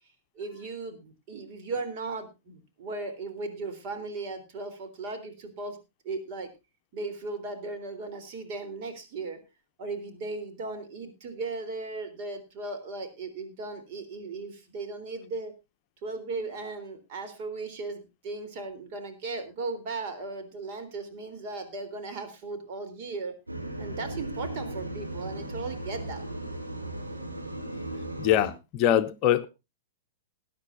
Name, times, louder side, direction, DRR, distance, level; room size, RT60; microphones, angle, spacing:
voice 1, 0.4-5.8 6.0-6.5 6.9-9.4 9.8-15.5 16.0-23.3 23.8-26.2, right 3 dB, 45° right, 3.6 m, -37 dB
sound 1, 23.5-28.5, right 1 dB, 85° right, 3.9 m, -36 dB
voice 2, 28.2-29.5, left 11 dB, 40° left, 0.8 m, -23 dB
20.5 x 10.0 x 2.6 m
figure-of-eight pair, 105°, 0 cm